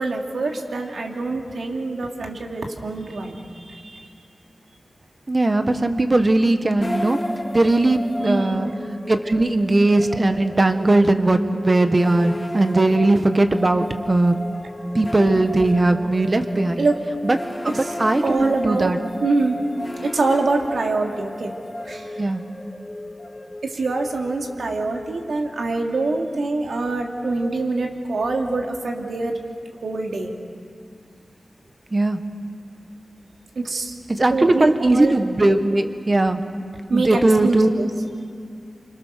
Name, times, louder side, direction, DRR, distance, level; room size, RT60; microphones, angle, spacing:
voice 1, 0.0-4.1 8.2-8.7 16.8-17.0 17.7-17.9 18.2-18.9 19.2-19.6 20.0-21.5 21.8-22.2 23.6-29.4 29.8-30.4 33.5-33.9 34.3-35.2 36.9-37.9, right 3 dB, 85° right, 1 dB, 2.8 m, -25 dB
voice 2, 5.3-7.2 7.5-8.7 9.1-14.4 14.9-16.8 17.2-17.4 17.6-19.0 22.2-22.4 31.9-32.2 34.1-36.4 36.9-37.7, right 2 dB, 35° right, 8 dB, 1.5 m, -19 dB
sound 1, 6.8-25.9, left 1 dB, 15° left, 2.0 m, -35 dB
29.5 x 25.5 x 6.7 m, 2.2 s
wide cardioid pair, 85°, 0 cm